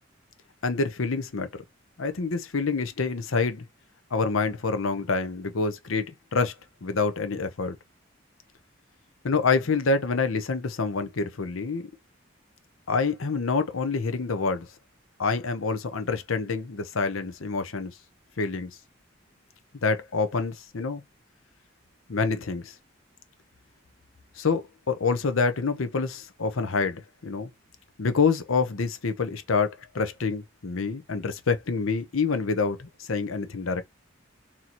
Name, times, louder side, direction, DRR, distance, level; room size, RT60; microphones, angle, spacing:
voice 1, 0.6-1.6 2.0-3.7 4.1-6.5 6.8-7.8 9.2-11.9 12.9-14.7 15.2-17.9 18.4-18.7 19.8-21.0 22.1-22.7 24.4-27.5 28.0-33.8, left 4 dB, 90° left, 0.7 m, -27 dB
4.0 x 2.9 x 2.9 m
head